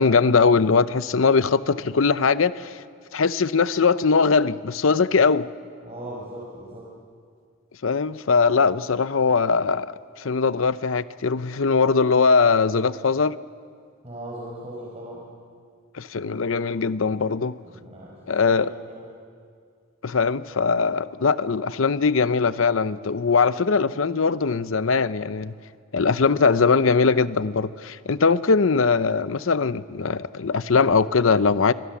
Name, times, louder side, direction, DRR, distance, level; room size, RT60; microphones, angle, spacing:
voice 1, 0.0-2.8 3.1-5.5 7.8-13.4 15.9-17.5 18.3-18.7 20.0-25.5 25.9-31.7, left 4 dB, 80° left, 14 dB, 0.7 m, -21 dB
voice 2, 5.8-7.0 14.0-15.3 17.6-19.1, right 1 dB, 30° right, -5 dB, 4.9 m, -38 dB
27.0 x 23.0 x 7.2 m, 2.1 s
head